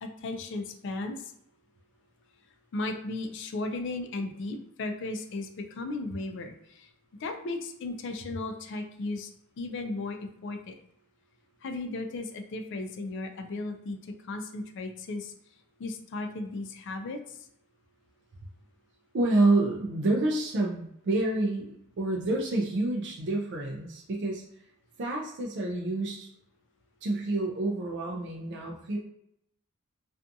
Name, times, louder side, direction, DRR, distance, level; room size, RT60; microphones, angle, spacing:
voice 1, 0.0-1.3 2.7-6.9 7.2-9.3 9.6-10.8 11.6-15.3 15.8-17.4, left 2 dB, 55° left, 6 dB, 0.4 m, -35 dB
voice 2, 19.1-24.4 25.0-26.3 27.0-29.0, right 2 dB, 55° right, -1 dB, 0.4 m, -28 dB
2.5 x 2.3 x 2.5 m, 0.73 s
head